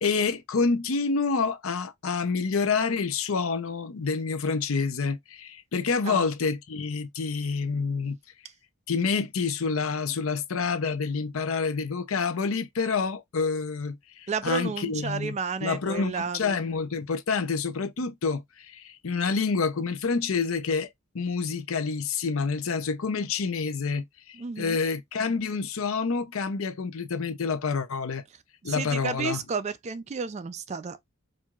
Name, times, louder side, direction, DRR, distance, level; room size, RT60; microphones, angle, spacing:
voice 1, 0.0-8.2 8.9-15.3 15.6-20.9 21.1-28.2 28.6-29.4, left 5 dB, 65° left, 0.6 m, -28 dB
voice 2, 14.3-16.5 24.3-24.8 28.6-31.1, right 5 dB, 30° right, 0.3 m, -32 dB
4.6 x 2.5 x 2.4 m
head